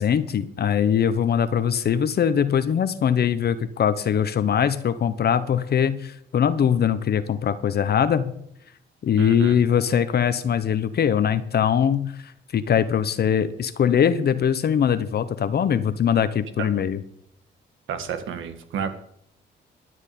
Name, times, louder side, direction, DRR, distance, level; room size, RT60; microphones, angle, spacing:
voice 1, 0.0-8.3 9.0-12.1 12.5-17.0, left 8 dB, 55° left, 12 dB, 1.0 m, -22 dB
voice 2, 9.2-9.6 16.6-16.8 17.9-18.9, right 7 dB, 80° right, 9 dB, 1.7 m, -31 dB
12.0 x 6.4 x 9.2 m, 0.71 s
cardioid pair, 90°, 20 cm